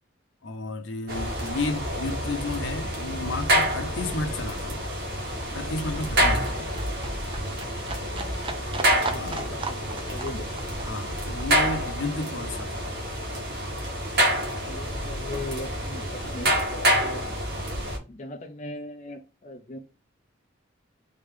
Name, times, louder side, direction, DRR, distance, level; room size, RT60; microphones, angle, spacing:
voice 1, 0.4-4.8 5.5-6.7 9.2-9.6 10.8-12.9, left 2 dB, 65° left, 0.8 m, -32 dB
sound 1, 1.1-18.0, right 1 dB, 55° right, 1.5 m, -27 dB
Livestock farm animals working animals, 4.2-13.4 13.7-14.7 15.1-15.2, right 3 dB, 25° right, 0.6 m, -39 dB
voice 2, 9.0-10.5 14.6-17.2 18.1-19.8, left 2 dB, 35° left, 0.6 m, -39 dB
3.7 x 3.4 x 3.6 m
head